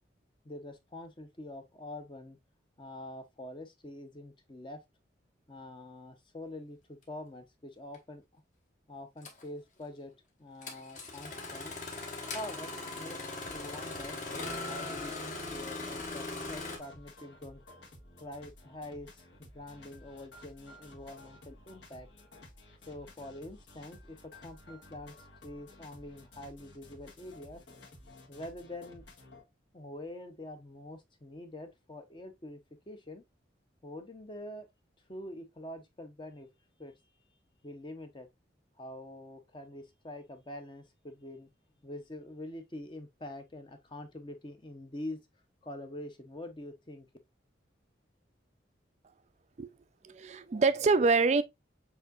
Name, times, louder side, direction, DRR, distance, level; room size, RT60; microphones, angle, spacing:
voice 1, 0.4-2.4 2.8-4.8 5.5-8.4 8.9-10.1 10.4-11.8 12.3-14.2 14.6-17.6 18.2-22.1 22.9-25.2 25.4-27.6 28.3-29.0 29.7-32.6 32.9-33.2 33.8-34.7 35.1-36.5 36.8-36.9 37.6-38.3 38.8-41.5 41.8-45.3 45.6-47.1, left 1 dB, 25° left, 0.6 m, -45 dB
Engine starting, 7.9-8.0 9.2-9.4 10.6-16.8, left 2 dB, 40° left, 1.2 m, -39 dB
sound 1, 13.4-29.4, left 1 dB, 70° left, 1.5 m, -54 dB
voice 2, 50.0-51.4, right 4 dB, 35° right, 0.3 m, -25 dB
7.0 x 2.7 x 2.4 m
head